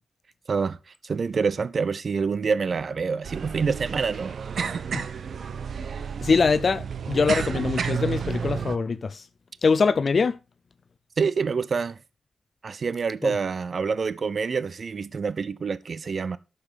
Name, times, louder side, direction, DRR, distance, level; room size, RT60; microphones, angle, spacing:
voice 1, 1.0-4.4 11.2-12.0 12.6-16.4, right 5 dB, 55° right, 0.6 m, -26 dB
sound 1, 3.2-8.8, right 7 dB, 70° right, 1.0 m, -31 dB
voice 2, 6.2-9.2 9.6-10.3 13.2-13.3, left 5 dB, 55° left, 0.7 m, -23 dB
9.7 x 7.0 x 5.0 m
cardioid pair, 70°, 0 cm